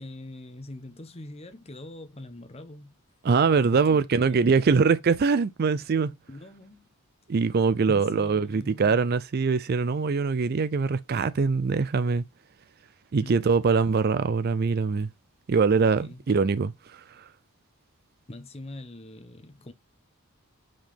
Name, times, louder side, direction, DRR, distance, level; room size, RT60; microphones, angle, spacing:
voice 1, 0.0-2.9 3.7-4.9 6.3-6.9 7.9-9.0 13.2-13.7 15.9-16.2 18.3-19.7, left 1 dB, 30° left, 0.8 m, -43 dB
voice 2, 3.2-6.1 7.3-12.2 13.1-15.1 15.5-17.0, right 5 dB, 45° right, 0.4 m, -23 dB
5.1 x 3.5 x 5.7 m
head